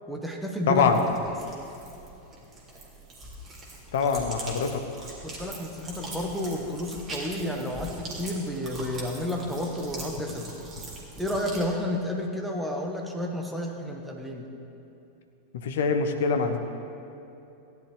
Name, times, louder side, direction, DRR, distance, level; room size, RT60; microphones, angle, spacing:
voice 1, 0.1-0.9 5.2-10.5 11.2-14.5, left 1 dB, 5° right, 0 dB, 1.4 m, -31 dB
voice 2, 0.7-1.0 3.9-4.8 15.5-16.6, left 5 dB, 55° left, 5 dB, 0.9 m, -24 dB
sound 1, 0.7-11.6, right 1 dB, 20° right, 2.5 m, -41 dB
16.0 x 10.5 x 3.3 m, 2.8 s
figure-of-eight pair, 90°, 0 cm